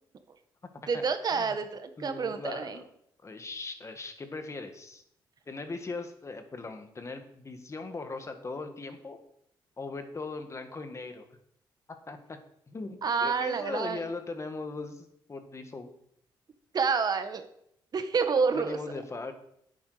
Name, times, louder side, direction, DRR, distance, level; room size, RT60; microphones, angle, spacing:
voice 1, 0.9-2.8 13.0-14.0 16.7-17.4 17.9-18.8, right 5 dB, 50° right, 9 dB, 1.4 m, -28 dB
voice 2, 2.0-2.9 3.2-5.0 5.5-9.2 9.8-11.3 12.1-12.4 12.7-15.9 18.6-19.3, left 3 dB, 35° left, 7 dB, 1.8 m, -39 dB
10.5 x 8.7 x 5.0 m, 0.71 s
cardioid pair, 75°, 9 cm